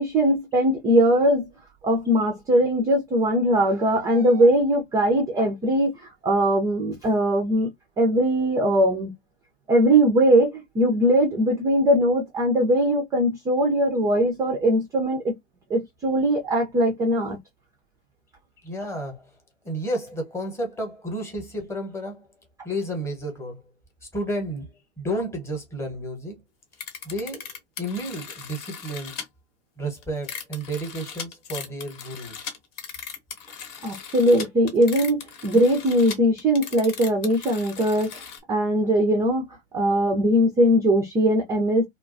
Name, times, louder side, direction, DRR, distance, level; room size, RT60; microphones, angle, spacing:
voice 1, 0.0-1.5 1.8-5.9 6.2-7.7 8.0-9.1 9.7-15.3 15.7-17.4 33.8-38.2 38.5-39.5 39.7-41.8, right 1 dB, 10° right, 0.3 m, -20 dB
voice 2, 18.6-19.3 19.6-22.3 22.6-23.6 24.1-26.4 27.0-27.5 27.8-29.2 29.8-32.4, right 1 dB, 10° left, 0.9 m, -31 dB
sound 1, 26.7-29.3 30.0-38.4, left 7 dB, 35° left, 0.8 m, -38 dB
2.4 x 2.2 x 2.5 m
hypercardioid pair, 105°, 34 cm